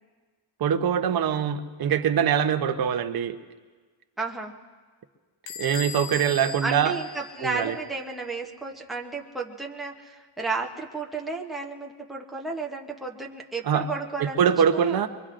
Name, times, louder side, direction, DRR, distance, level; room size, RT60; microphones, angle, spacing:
voice 1, 0.6-3.4 5.6-6.9 7.4-7.8 13.6-13.9 14.2-15.1, right 8 dB, 50° right, 7 dB, 0.8 m, -23 dB
voice 2, 4.2-4.5 6.6-14.4 14.7-15.0, right 4 dB, ahead, -1 dB, 0.8 m, -33 dB
Bell / Squeak, 5.5-8.0, left 6 dB, 65° left, 0.8 m, -39 dB
24.0 x 23.0 x 2.5 m, 1.4 s
wide cardioid pair, 170°, 47 cm